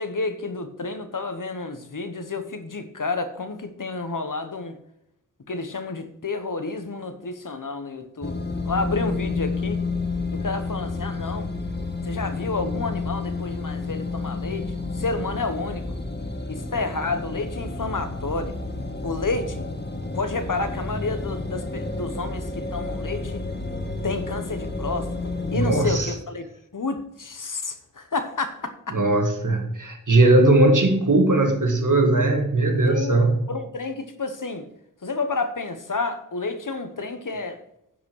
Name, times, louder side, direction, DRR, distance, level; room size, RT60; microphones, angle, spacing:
voice 1, 0.0-4.8 5.5-9.8 10.3-11.5 12.0-15.9 16.5-18.6 19.0-19.6 20.1-23.4 24.0-25.1 25.5-26.5 26.7-29.0 32.8-34.7 35.0-37.6, left 3 dB, 85° left, 8 dB, 1.1 m, -30 dB
sound 1, 8.2-26.0, left 3 dB, 35° left, 1.6 m, -30 dB
voice 2, 25.5-26.1 28.9-33.4, right 2 dB, 75° right, 3 dB, 1.9 m, -19 dB
10.5 x 5.1 x 6.3 m, 0.80 s
wide cardioid pair, 40°, 31 cm